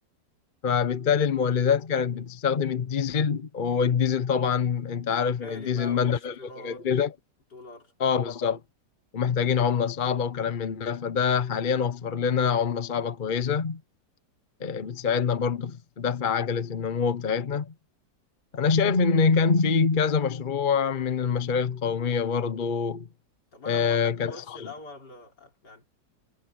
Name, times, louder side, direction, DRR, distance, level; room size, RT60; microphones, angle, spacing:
voice 1, 0.6-6.3 6.6-7.1 8.0-8.6 9.1-13.8 14.6-17.7 18.5-23.1 23.7-24.7, left 6 dB, 40° left, 0.8 m, -25 dB
voice 2, 5.4-7.1 7.5-7.9 23.5-25.9, left 2 dB, 60° left, 5.2 m, -44 dB
omnidirectional pair, 2.0 m